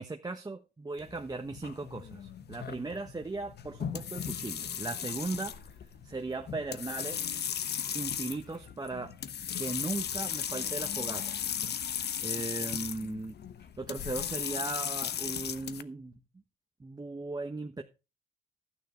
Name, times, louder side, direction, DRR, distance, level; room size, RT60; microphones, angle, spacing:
voice 1, 0.0-5.5 6.0-7.3 7.9-9.2 9.6-11.4 11.8-13.3 13.8-16.1 16.8-17.8, right 3 dB, 20° right, 1.2 m, -37 dB
sound 1, 1.0-15.8, left 8 dB, 55° left, 1.1 m, -36 dB
12.5 x 9.5 x 4.5 m
cardioid pair, 90°, 20 cm